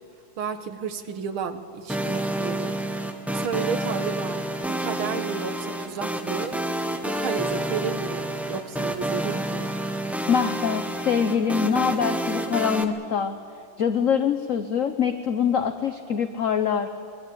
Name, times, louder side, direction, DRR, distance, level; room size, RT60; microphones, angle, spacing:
voice 1, 0.4-2.8 3.3-6.6 7.0-9.8, right 6 dB, 75° right, 8 dB, 2.1 m, -32 dB
sound 1, 1.9-12.8, right 1 dB, ahead, 1.1 m, -29 dB
voice 2, 10.3-13.4 13.8-16.9, left 7 dB, 50° left, 8 dB, 1.0 m, -24 dB
23.0 x 22.5 x 8.7 m, 2.4 s
omnidirectional pair, 2.4 m